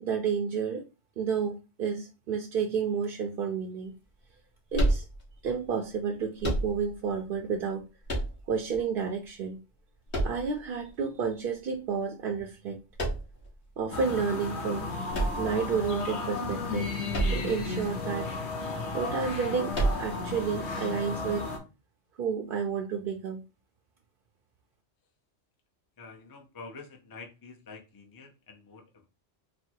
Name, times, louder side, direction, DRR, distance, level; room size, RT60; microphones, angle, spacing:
voice 1, 0.0-0.8 1.2-3.9 4.7-5.0 5.4-7.8 8.5-9.6 10.2-12.8 13.8-14.9 15.4-16.9 17.3-18.3 18.9-21.5 22.2-23.4, right 6 dB, 60° right, 3 dB, 0.7 m, -31 dB
sound 1, 4.7-5.5 6.4-7.1 8.1-8.8 10.1-10.9 13.0-13.5 15.1-16.0 17.1-17.7 17.9-18.0 19.7-20.4, right 2 dB, 50° left, 1.6 m, -29 dB
sound 2, 13.9-21.6, left 3 dB, 70° left, 1.2 m, -34 dB
voice 2, 26.0-29.1, left 4 dB, 25° left, 2 dB, 0.5 m, -47 dB
4.2 x 2.0 x 4.5 m, 0.29 s
omnidirectional pair, 1.2 m